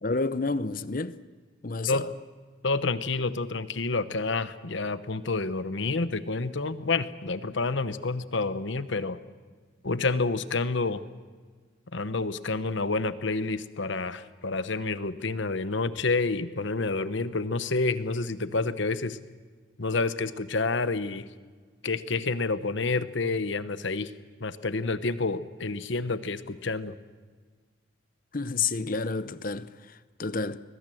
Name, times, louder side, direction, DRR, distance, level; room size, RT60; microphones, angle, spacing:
voice 1, 0.0-1.2 1.6-2.1 28.3-30.6, left 4 dB, 40° left, 0.7 m, -30 dB
voice 2, 2.6-9.2 9.8-11.1 11.9-19.2 19.8-21.2 21.8-24.1 24.4-27.0, left 3 dB, 65° left, 1.0 m, -29 dB
21.5 x 21.0 x 7.7 m
head